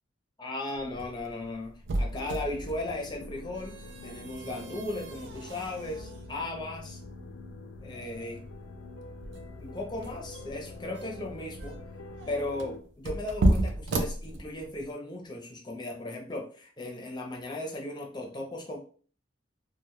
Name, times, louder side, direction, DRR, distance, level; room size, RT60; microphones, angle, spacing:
voice 1, 0.4-3.7 4.0-7.0 7.8-8.4 9.6-11.8 12.3-18.8, left 2 dB, 25° left, 0 dB, 0.5 m, -36 dB
sound 1, 0.7-14.9, right 1 dB, 70° right, 0.4 m, -34 dB
sound 2, 2.1-12.8, left 3 dB, 85° left, 0.4 m, -45 dB
2.1 x 2.1 x 2.9 m, 0.43 s
head